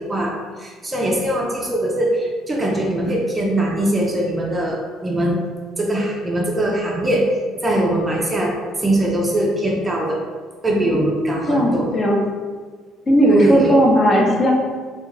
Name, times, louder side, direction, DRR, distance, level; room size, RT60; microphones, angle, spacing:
voice 1, 0.0-5.4 5.8-7.3 7.6-10.2 10.6-11.9 13.3-13.8, right 1 dB, 20° right, -1 dB, 0.5 m, -21 dB
voice 2, 10.7-12.2 13.1-14.5, equal, 30° left, -2 dB, 0.7 m, -16 dB
3.4 x 2.3 x 3.1 m, 1.5 s
cardioid pair, 110°, 0 cm